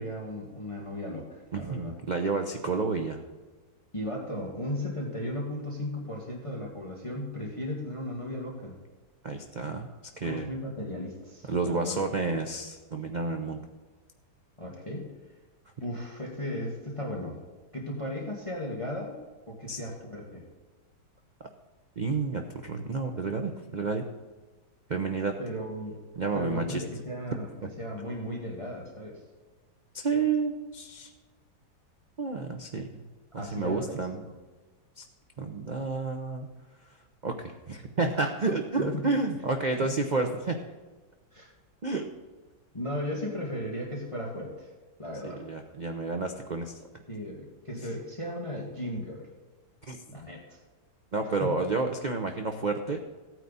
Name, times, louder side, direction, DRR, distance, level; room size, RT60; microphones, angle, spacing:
voice 1, 0.0-1.9 3.9-8.8 10.2-12.0 14.6-15.1 15.8-17.4 17.7-19.2 19.5-20.4 25.4-26.0 26.3-27.5 27.8-29.2 33.4-34.0 34.2-34.3 38.8-39.1 39.7-39.9 41.3-41.5 42.7-44.7 45.0-45.4 47.1-49.3 50.1-50.6 51.4-51.5, left 1 dB, 20° left, -2 dB, 1.8 m, -36 dB
voice 2, 1.5-3.2 9.2-9.9 10.2-10.5 11.5-13.6 19.7-19.8 22.0-24.1 24.9-25.3 26.2-26.8 29.9-31.1 32.2-33.0 33.3-34.2 35.0-35.1 35.4-36.5 37.2-40.6 41.8-42.0 45.2-46.8 49.9-50.0 51.1-53.0, right 3 dB, 40° right, 4 dB, 0.6 m, -30 dB
15.5 x 9.1 x 4.1 m, 1.3 s
omnidirectional pair, 1.8 m